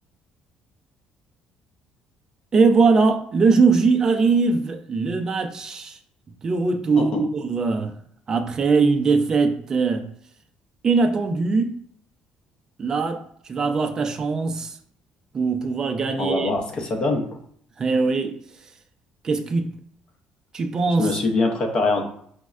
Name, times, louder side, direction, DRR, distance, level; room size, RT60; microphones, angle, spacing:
voice 1, 2.5-6.0 6.4-7.9 8.3-10.1 10.8-11.8 12.8-13.2 13.5-14.8 15.3-16.5 17.8-18.4 19.2-19.7 20.5-21.1, right 4 dB, 25° right, 0.3 m, -21 dB
voice 2, 16.2-17.3 20.9-22.1, left 3 dB, 35° left, 0.6 m, -23 dB
5.1 x 2.0 x 2.3 m
cardioid pair, 170°, 3 cm